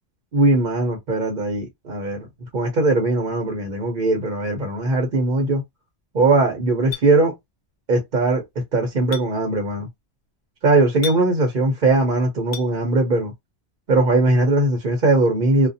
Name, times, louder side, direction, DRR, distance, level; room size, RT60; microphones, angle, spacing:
voice 1, 0.3-2.3 2.5-5.6 6.1-7.3 7.9-8.4 8.7-9.9 10.6-13.3 13.9-15.7, right 2 dB, 50° right, 0.8 m, -19 dB
Chink clink, 6.9-7.1 9.1-9.3 11.0-11.2 12.5-12.7, left 8 dB, 65° left, 0.7 m, -31 dB
2.4 x 2.3 x 2.7 m
omnidirectional pair, 1.1 m